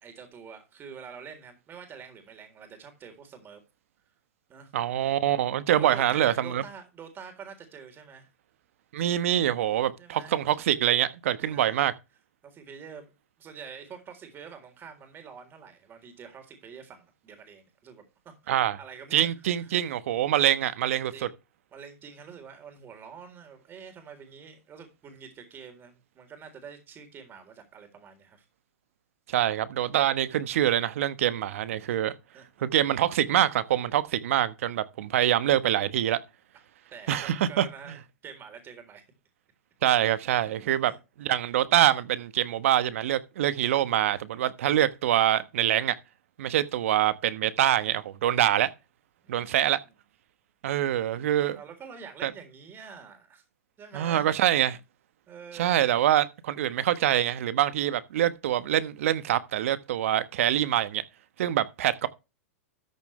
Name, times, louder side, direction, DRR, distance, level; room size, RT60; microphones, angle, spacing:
voice 1, 0.0-3.6 4.5-4.7 5.5-8.3 10.0-10.4 11.4-11.8 12.4-13.1 13.4-19.2 19.6-19.7 21.1-21.4 21.7-28.5 31.9-32.0 32.3-32.4 36.9-39.0 40.7-41.0 49.2-49.8 51.5-53.4 53.8-54.3 55.3-55.8, right 6 dB, 30° right, 3.8 m, -46 dB
voice 2, 4.7-6.6 8.9-11.9 18.5-18.8 19.1-21.1 29.3-32.1 32.6-36.2 37.1-37.6 39.8-40.9 41.2-45.9 46.4-48.7 49.3-49.8 50.6-51.6 52.2-52.3 53.9-54.8 55.5-61.0 61.4-62.1, right 12 dB, 65° right, 1.2 m, -25 dB
13.5 x 7.2 x 3.2 m
hypercardioid pair, 110°, 8 cm